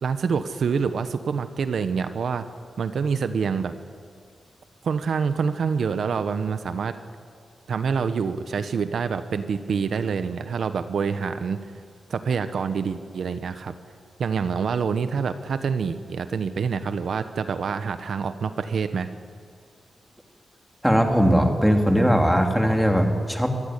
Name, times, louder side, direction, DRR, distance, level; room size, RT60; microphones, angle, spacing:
voice 1, 0.0-2.4 2.8-3.7 4.8-7.0 7.7-11.6 12.1-13.7 14.2-19.1, right 6 dB, 70° right, 10 dB, 1.0 m, -26 dB
voice 2, 20.8-23.6, equal, ahead, 3 dB, 2.6 m, -20 dB
24.5 x 15.0 x 9.9 m, 2.2 s
wide cardioid pair, 125°, 0 cm